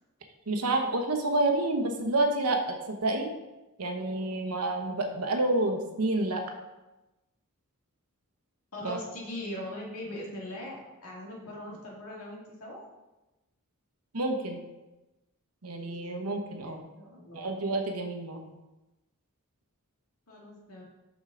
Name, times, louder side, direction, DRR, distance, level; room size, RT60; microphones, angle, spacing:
voice 1, 0.5-3.3 3.8-6.4 8.8-9.0 14.1-14.6 15.6-16.8 17.3-18.5, right 2 dB, 80° right, 4 dB, 1.0 m, -29 dB
voice 2, 8.7-12.8 16.6-17.5 20.3-20.8, left 1 dB, 80° left, -2 dB, 2.0 m, -40 dB
6.6 x 6.3 x 3.9 m, 1.0 s
head